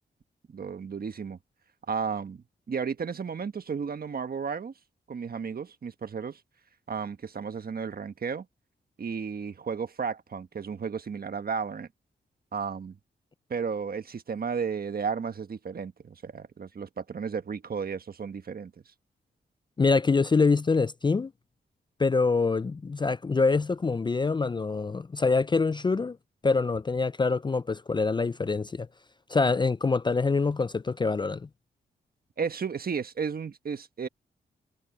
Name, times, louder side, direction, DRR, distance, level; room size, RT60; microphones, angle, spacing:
voice 1, 0.5-1.4 1.9-4.7 5.1-6.4 6.9-8.5 9.0-11.9 12.5-13.0 13.5-18.7 32.4-34.1, right 6 dB, 55° right, 1.4 m, -33 dB
voice 2, 19.8-21.3 22.0-26.2 26.4-28.9 29.3-31.5, left 4 dB, 25° left, 0.4 m, -25 dB
cardioid pair, 65°, 19 cm